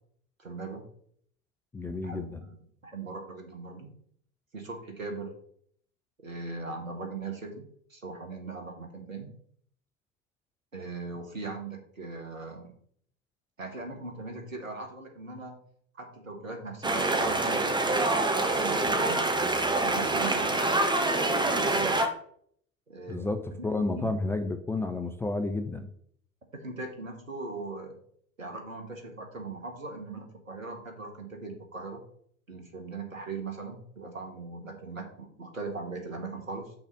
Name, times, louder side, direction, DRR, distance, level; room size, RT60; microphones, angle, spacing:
voice 1, 0.4-0.8 2.0-3.9 4.5-5.3 6.2-9.3 10.7-12.7 13.6-15.6 15.9-18.0 18.4-19.3 19.8-20.7 21.1-22.0 22.9-23.3 23.6-24.1 26.5-28.0 28.4-32.0 32.5-36.7, right 3 dB, 85° right, 4 dB, 1.5 m, -39 dB
voice 2, 1.7-2.4 23.1-25.9, left 2 dB, 5° left, 6 dB, 0.3 m, -31 dB
sound 1, 16.8-22.1, right 2 dB, 10° right, 1.1 m, -26 dB
6.1 x 4.0 x 6.2 m, 0.63 s
figure-of-eight pair, 70°, 39 cm